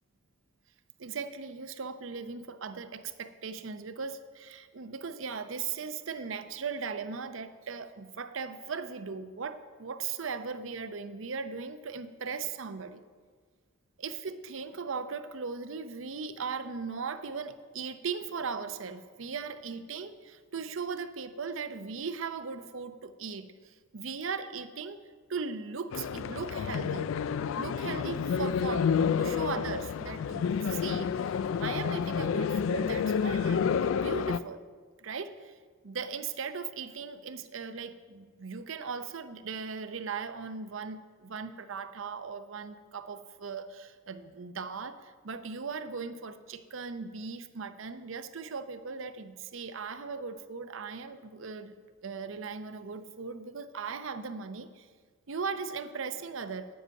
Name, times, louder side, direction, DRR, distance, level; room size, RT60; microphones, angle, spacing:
voice 1, 1.0-13.0 14.0-25.0 25.3-27.1 27.5-28.9 29.2-34.6 35.0-35.6 35.8-51.8 52.0-54.9 55.3-56.7, right 5 dB, 70° right, 11 dB, 0.7 m, -38 dB
sound 1, 25.9-34.4, left 6 dB, 70° left, 0.3 m, -29 dB
9.3 x 7.8 x 6.4 m, 1.5 s
head